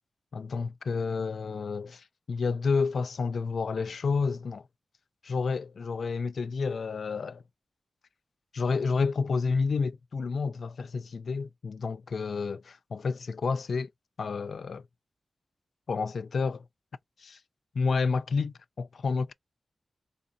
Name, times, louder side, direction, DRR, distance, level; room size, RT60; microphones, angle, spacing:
voice 1, 0.3-4.6 5.2-7.4 8.5-13.9 14.2-14.8 15.9-16.6 17.2-17.4 17.7-19.3, left 4 dB, 70° left, 0.3 m, -30 dB
3.9 x 2.3 x 2.6 m
wide cardioid pair, 145°, 0 cm